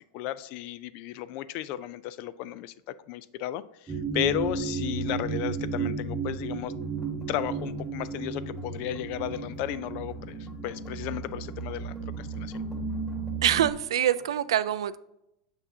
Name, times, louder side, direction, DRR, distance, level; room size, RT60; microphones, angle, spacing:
voice 1, 0.1-6.7 7.3-12.6, left 13 dB, 55° left, 16 dB, 0.4 m, -34 dB
sound 1, 3.9-13.7, right 5 dB, 20° right, 0.8 m, -34 dB
sound 2, 6.8-14.4, left 2 dB, 5° left, 1.7 m, -51 dB
voice 2, 13.4-15.0, right 11 dB, 85° right, 15 dB, 0.3 m, -25 dB
6.7 x 5.9 x 2.7 m, 0.83 s
hypercardioid pair, 115°, 3 cm